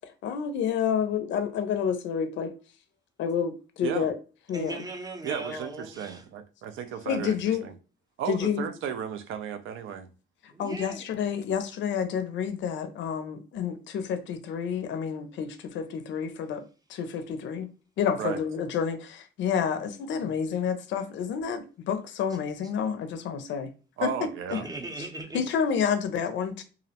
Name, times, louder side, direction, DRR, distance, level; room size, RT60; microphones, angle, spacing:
voice 1, 0.0-2.5 3.2-4.2 4.5-4.8 7.1-7.7 8.3-8.6 10.6-16.6 16.9-17.7 18.0-23.7 24.0-24.6 25.3-26.6, left 7 dB, 65° left, 0.4 m, -29 dB
voice 2, 3.8-4.1 5.2-7.7 8.2-10.1 18.2-18.4 24.0-24.7, right 8 dB, 85° right, 0.4 m, -34 dB
voice 3, 4.5-6.3 10.5-11.1 20.2-20.3 24.5-25.4, right 2 dB, 20° right, 0.5 m, -38 dB
2.5 x 2.0 x 2.7 m
cardioid pair, 90°, 20 cm